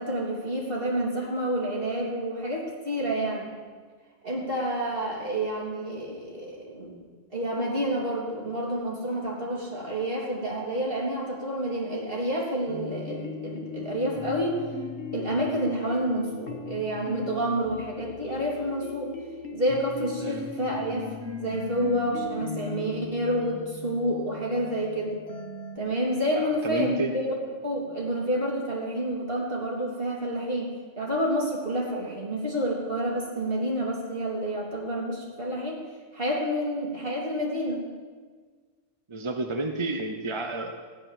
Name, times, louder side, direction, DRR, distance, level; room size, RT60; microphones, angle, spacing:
voice 1, 0.0-3.5 4.2-7.0 7.3-14.6 15.1-19.2 19.5-25.2 25.8-27.3 27.6-35.8 36.1-37.8, right 1 dB, 45° right, -3 dB, 3.8 m, -29 dB
sound 1, 12.7-25.8, left 4 dB, 60° left, 1.6 m, -38 dB
voice 2, 26.3-27.2 39.1-40.7, right 2 dB, 25° right, 4 dB, 0.9 m, -30 dB
15.0 x 11.0 x 7.6 m, 1.5 s
omnidirectional pair, 1.3 m